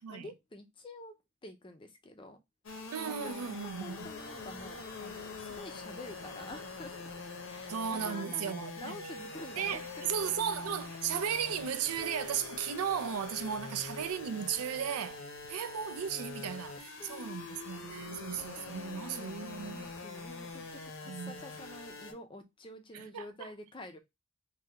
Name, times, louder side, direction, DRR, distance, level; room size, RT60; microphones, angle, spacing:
voice 1, 0.1-1.2 1.4-2.4 3.0-7.1 7.5-10.0 15.4-15.5 16.7-17.4 18.1-24.0, left 1 dB, 20° left, 0.4 m, -49 dB
sound 1, 2.6-22.1, left 4 dB, 60° left, 0.7 m, -44 dB
voice 2, 2.9-4.1 7.7-9.1 9.6-19.9 21.0-21.4 22.9-23.5, right 8 dB, 80° right, 0.4 m, -36 dB
3.4 x 2.3 x 2.7 m
head